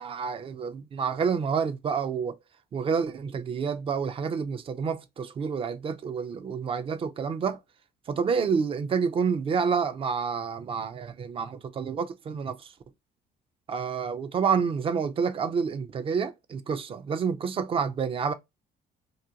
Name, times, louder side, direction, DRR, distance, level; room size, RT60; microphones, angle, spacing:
voice 1, 0.0-2.4 2.7-7.6 8.1-12.7 13.7-18.3, right 6 dB, 35° right, 0.3 m, -28 dB
2.4 x 2.2 x 2.7 m
cardioid pair, 110°, 17 cm